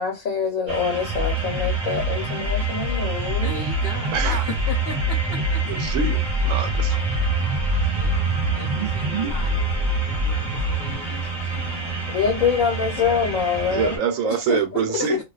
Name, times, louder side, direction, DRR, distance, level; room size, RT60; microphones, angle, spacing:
voice 1, 0.0-3.5 12.1-14.0 14.5-14.6 14.9-15.0, left 6 dB, 90° left, 1.2 m, -24 dB
sound 1, 0.7-14.0, right 3 dB, 20° right, 0.9 m, -30 dB
sound 2, 1.0-10.9, right 1 dB, 55° right, 0.5 m, -25 dB
voice 2, 3.4-5.6 7.9-9.6 10.0-11.9 15.0-15.2, left 4 dB, 55° left, 0.8 m, -37 dB
voice 3, 4.1-4.4 5.7-7.0 7.7-8.1 13.7-15.2, right 7 dB, 75° right, 1.0 m, -26 dB
2.5 x 2.2 x 2.4 m
omnidirectional pair, 1.4 m